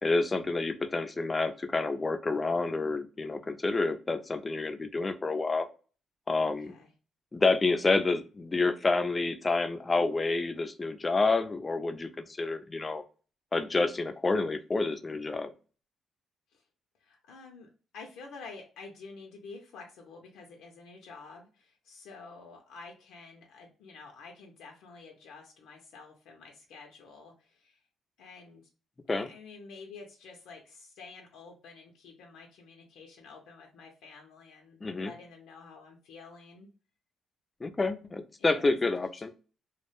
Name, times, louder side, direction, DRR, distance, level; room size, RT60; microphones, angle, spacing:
voice 1, 0.0-5.7 6.3-6.7 7.3-13.0 13.5-15.5 29.1-29.3 34.8-35.1 37.6-39.3, left 3 dB, 25° left, 8 dB, 0.4 m, -28 dB
voice 2, 6.4-6.9 16.5-16.6 17.0-27.8 28.2-28.6 29.1-36.7 38.4-38.9, left 4 dB, 85° left, 1 dB, 0.5 m, -49 dB
2.2 x 2.1 x 3.1 m, 0.37 s
cardioid pair, 90°, 0 cm